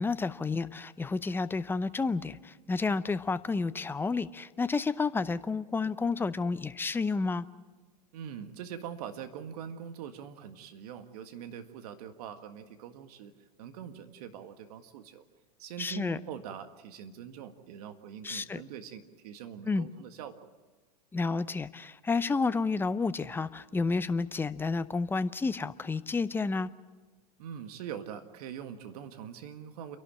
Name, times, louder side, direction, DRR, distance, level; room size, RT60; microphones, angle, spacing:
voice 1, 0.0-7.5 15.8-16.2 18.2-18.6 19.6-19.9 21.1-26.7, left 4 dB, 10° left, 14 dB, 0.7 m, -30 dB
voice 2, 8.1-13.3 13.6-15.3 15.6-20.5 27.4-30.0, right 9 dB, 65° right, 8 dB, 1.9 m, -43 dB
28.5 x 11.5 x 8.8 m, 1.3 s
hypercardioid pair, 105°, 21 cm